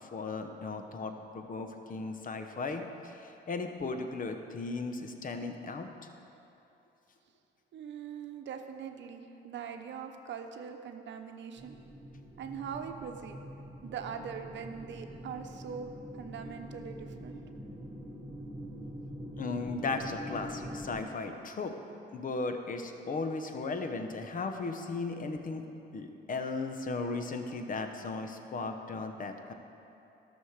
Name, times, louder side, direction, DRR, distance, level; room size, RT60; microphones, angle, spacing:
voice 1, 0.0-5.9 19.3-21.7 22.1-25.6 25.9-29.5, left 3 dB, 45° left, 6 dB, 1.0 m, -36 dB
voice 2, 7.7-11.8 12.4-13.4 13.8-15.9 16.2-17.4, right 7 dB, 65° right, 6 dB, 0.9 m, -42 dB
sound 1, 11.6-21.0, equal, 20° right, 2.4 m, -44 dB
13.0 x 6.4 x 6.5 m, 2.8 s
cardioid pair, 90°, 20 cm